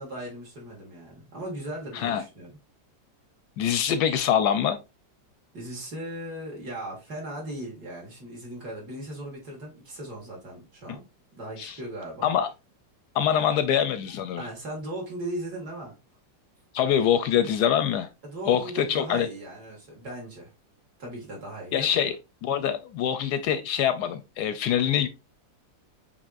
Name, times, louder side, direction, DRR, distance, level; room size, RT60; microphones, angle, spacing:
voice 1, 0.0-2.6 5.5-11.0 11.3-12.3 13.3-13.6 14.3-16.0 18.2-20.5 21.0-22.1, right 1 dB, 55° right, 2.6 m, -38 dB
voice 2, 3.6-4.8 11.6-11.8 12.2-12.5 13.1-14.5 16.7-18.1 18.5-19.3 21.7-22.2 22.4-25.1, left 9 dB, 75° left, 1.0 m, -24 dB
7.0 x 3.1 x 2.4 m
omnidirectional pair, 2.0 m